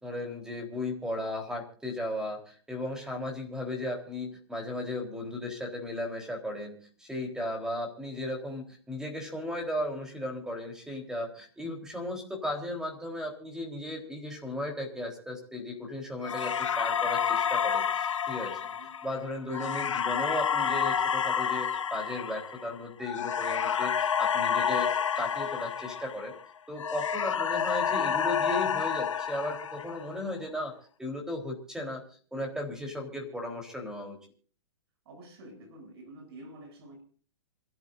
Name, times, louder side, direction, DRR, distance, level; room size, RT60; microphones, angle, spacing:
voice 1, 0.0-18.6 19.0-26.3 26.7-30.7 31.0-34.2, left 1 dB, 5° right, 2 dB, 3.8 m, -36 dB
sound 1, 16.2-26.4 26.8-30.2, left 7 dB, 85° left, 1.1 m, -29 dB
voice 2, 35.1-37.0, right 1 dB, 55° right, 5 dB, 7.6 m, -48 dB
27.5 x 13.5 x 2.6 m, 0.43 s
hypercardioid pair, 140°, 16 cm